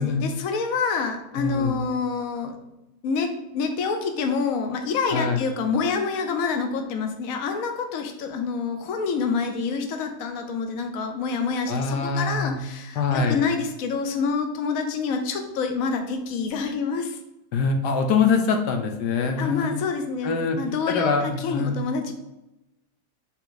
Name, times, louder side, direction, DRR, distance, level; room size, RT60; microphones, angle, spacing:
voice 1, 0.0-2.6 3.0-17.2 19.4-22.1, left 5 dB, 60° left, 5 dB, 1.1 m, -27 dB
voice 2, 1.4-1.8 5.1-5.4 11.7-12.6 13.0-13.4 17.5-19.8 20.2-20.6 20.9-21.8, left 5 dB, 85° left, 5 dB, 1.4 m, -24 dB
7.0 x 4.0 x 4.0 m, 0.93 s
omnidirectional pair, 1.7 m